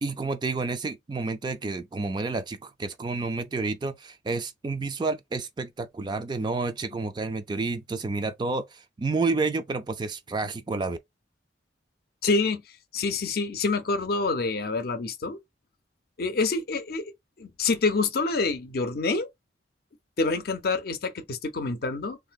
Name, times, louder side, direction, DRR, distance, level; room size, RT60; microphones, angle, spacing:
voice 1, 0.0-11.0, right 3 dB, 25° right, 0.3 m, -30 dB
voice 2, 12.2-12.6 12.9-15.4 16.2-17.1 17.4-19.3 20.2-22.2, left 3 dB, 55° left, 0.5 m, -27 dB
3.3 x 2.6 x 2.2 m
head